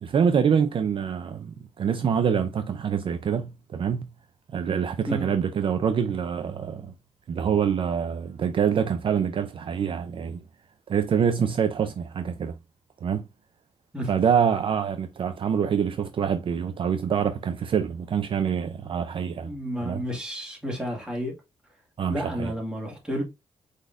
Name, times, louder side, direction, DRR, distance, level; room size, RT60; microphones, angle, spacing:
voice 1, 0.0-4.1 4.5-6.9 7.3-10.4 10.9-12.6 13.0-13.2 14.1-19.5 19.8-20.0 22.0-22.5, right 7 dB, 55° right, 0.5 m, -25 dB
voice 2, 19.4-21.3 22.1-23.2, equal, 5° right, 2.2 m, -31 dB
4.8 x 4.0 x 2.6 m
wide cardioid pair, 125°, 11 cm